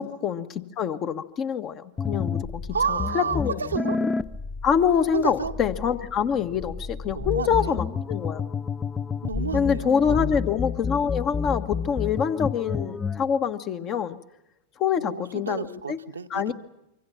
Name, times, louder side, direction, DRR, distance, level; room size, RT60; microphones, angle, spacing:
voice 1, 0.0-2.6 2.9-3.6 4.0-4.1 4.6-8.4 9.5-14.2 14.8-16.0 16.3-16.5, left 7 dB, 35° left, 9 dB, 1.4 m, -25 dB
sound 1, 2.0-13.2, left 5 dB, 15° left, 0.8 m, -30 dB
voice 2, 2.7-4.0 5.1-5.5 7.1-7.8 9.2-10.3 15.0-16.5, right 5 dB, 75° right, 7 dB, 1.1 m, -31 dB
25.5 x 24.5 x 5.8 m, 0.90 s
figure-of-eight pair, 90°, 0 cm